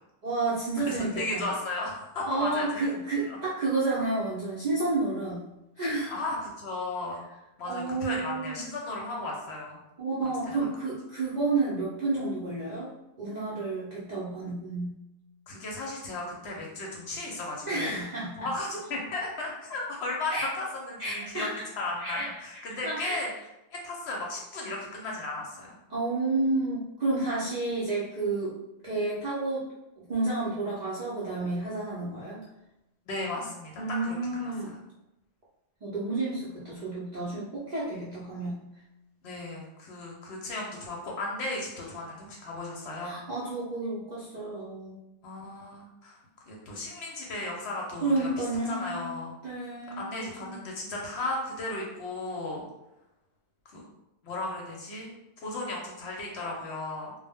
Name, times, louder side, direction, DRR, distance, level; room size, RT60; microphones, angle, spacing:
voice 1, 0.2-1.5 2.3-5.5 5.8-6.1 7.7-8.7 10.0-12.9 13.2-14.9 17.6-18.3 20.3-20.5 21.0-21.7 22.0-23.2 25.9-28.6 28.8-29.7 30.1-32.4 33.8-34.7 35.8-38.6 43.0-45.0 48.0-50.6, right 3 dB, 55° right, -8 dB, 0.4 m, -31 dB
voice 2, 0.9-2.9 3.2-3.4 6.1-7.2 7.6-9.8 15.5-17.9 18.4-21.5 21.8-23.3 23.8-25.8 33.1-34.5 39.2-43.1 45.2-46.2 46.5-48.3 48.7-49.3 50.0-52.6 53.7-53.9 54.2-55.1 55.4-57.1, left 2 dB, 65° left, -2 dB, 0.8 m, -35 dB
2.1 x 2.0 x 3.3 m, 0.91 s
omnidirectional pair, 1.3 m